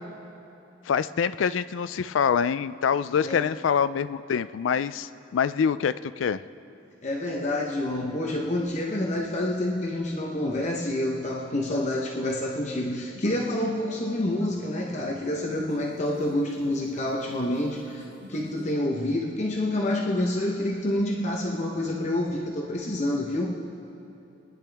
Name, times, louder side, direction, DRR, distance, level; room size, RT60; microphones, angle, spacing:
voice 1, 0.8-6.4, left 7 dB, 90° left, 14 dB, 0.4 m, -25 dB
voice 2, 7.0-23.5, left 1 dB, 40° left, -1 dB, 0.9 m, -28 dB
sound 1, 13.1-18.7, equal, 80° right, 2.7 m, -47 dB
28.0 x 10.0 x 3.5 m, 3.0 s
head